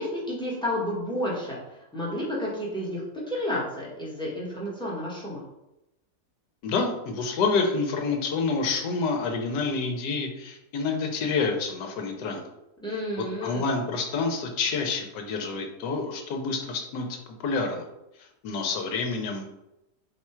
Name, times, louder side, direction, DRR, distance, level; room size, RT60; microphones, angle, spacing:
voice 1, 0.0-5.4 12.8-13.6, left 1 dB, 5° left, -6 dB, 0.9 m, -31 dB
voice 2, 6.6-12.4 13.2-17.1 17.4-17.8 18.4-19.4, left 4 dB, 75° left, 3 dB, 1.3 m, -28 dB
4.3 x 2.3 x 4.3 m, 0.91 s
omnidirectional pair, 1.9 m